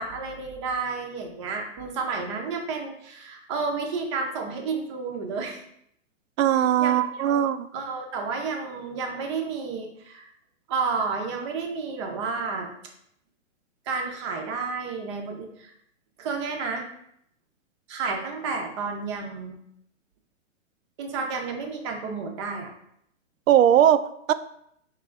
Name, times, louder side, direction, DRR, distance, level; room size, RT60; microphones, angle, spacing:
voice 1, 0.0-5.6 6.8-7.4 7.7-10.3 10.7-12.7 13.9-15.7 16.2-16.9 17.9-19.6 21.0-22.7, right 4 dB, 25° right, 3 dB, 0.5 m, -31 dB
voice 2, 6.4-7.7 23.5-24.3, right 10 dB, 85° right, 13 dB, 0.5 m, -20 dB
4.4 x 3.0 x 3.5 m, 0.73 s
hypercardioid pair, 150°, 39 cm